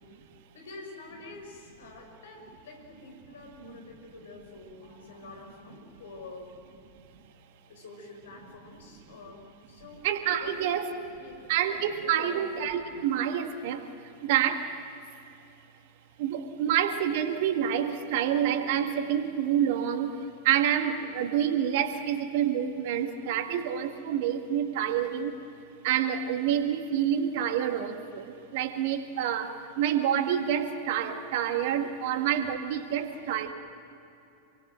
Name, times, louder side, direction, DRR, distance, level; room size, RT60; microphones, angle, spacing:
voice 1, 0.5-6.7 7.7-10.0 10.4-10.9 11.2-11.4 12.0-12.4 31.8-32.2 33.1-33.2, left 2 dB, 65° left, 3 dB, 5.6 m, -47 dB
voice 2, 10.0-10.9 11.5-13.8 14.2-14.6 16.2-20.1 20.5-25.3 25.8-29.5 29.8-33.5, right 9 dB, 50° right, 7 dB, 1.9 m, -27 dB
28.0 x 23.5 x 7.6 m, 2.8 s
figure-of-eight pair, 90°, 0 cm